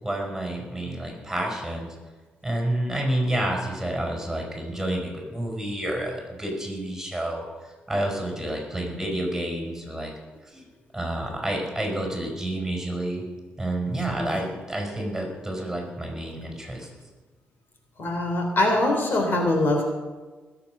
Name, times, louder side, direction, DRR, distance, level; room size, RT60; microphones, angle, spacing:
voice 1, 0.0-1.9 2.4-10.1 10.4-10.6 10.9-13.2 13.6-16.9, right 1 dB, 5° right, 0 dB, 5.2 m, -29 dB
voice 2, 18.0-19.8, left 1 dB, 55° left, 3 dB, 3.3 m, -23 dB
20.5 x 7.9 x 6.0 m, 1.3 s
cardioid pair, 80°, 4 cm